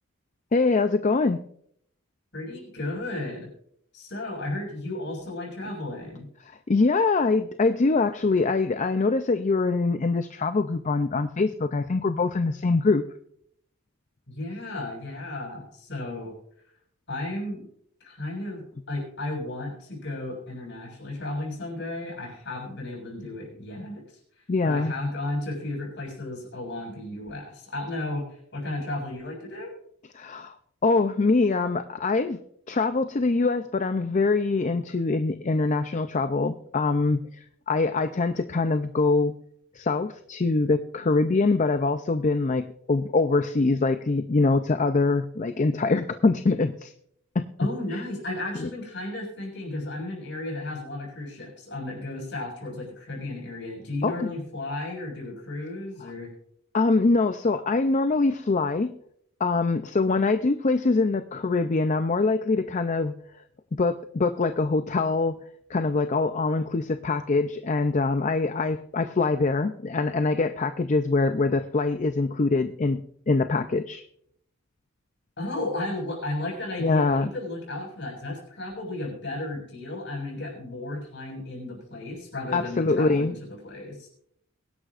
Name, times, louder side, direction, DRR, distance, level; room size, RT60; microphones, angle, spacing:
voice 1, 0.5-1.4 6.4-13.0 24.5-24.9 30.1-30.5 30.8-32.4 32.7-39.4 39.7-46.9 47.4-47.5 47.9-48.0 48.6-48.7 54.0-54.3 56.7-58.9 59.4-63.1 63.8-65.4 65.7-73.0 73.3-74.0 76.8-77.3 82.5-83.3, left 3 dB, 35° left, 9 dB, 0.5 m, -24 dB
voice 2, 2.3-3.5 3.9-6.3 14.3-16.3 17.1-17.7 18.0-24.0 24.6-29.7 47.6-56.3 75.4-84.1, left 2 dB, 55° left, -1 dB, 6.7 m, -34 dB
22.5 x 11.5 x 2.5 m, 0.67 s
head